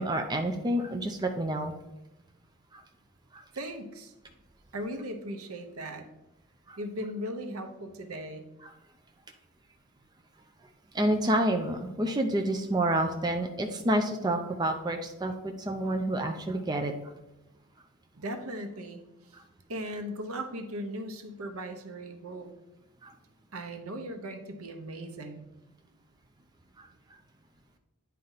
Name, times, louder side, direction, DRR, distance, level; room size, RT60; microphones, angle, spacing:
voice 1, 0.0-1.7 2.7-2.8 3.3-3.4 6.7-6.8 8.6-8.7 10.9-16.9 19.3-19.4 23.0-23.1, right 1 dB, 20° right, 4 dB, 0.4 m, -29 dB
voice 2, 3.5-4.1 4.7-6.1 6.8-8.5 18.2-19.0 19.7-22.6 23.5-25.4, equal, 80° right, 6 dB, 0.9 m, -38 dB
9.3 x 4.2 x 4.0 m, 0.95 s
head